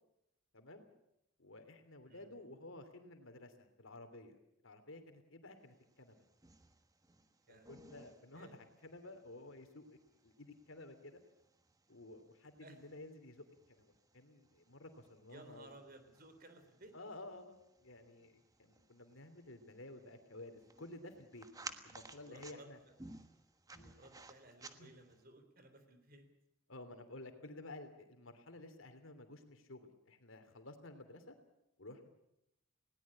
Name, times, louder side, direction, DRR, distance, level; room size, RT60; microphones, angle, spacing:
voice 1, 0.5-0.8 1.4-4.4 4.6-6.2 7.5-10.0 10.2-11.2 11.9-15.8 16.9-22.8 23.7-24.1 24.7-24.9 26.7-31.3 31.8-32.1, left 2 dB, 80° left, 8 dB, 3.1 m, -53 dB
sound 1, 5.8-25.2, right 3 dB, 20° right, 1.3 m, -58 dB
voice 2, 15.3-16.9 22.2-22.7 24.0-26.3, right 2 dB, 45° right, 9 dB, 3.7 m, -58 dB
20.5 x 18.0 x 8.7 m, 0.82 s
head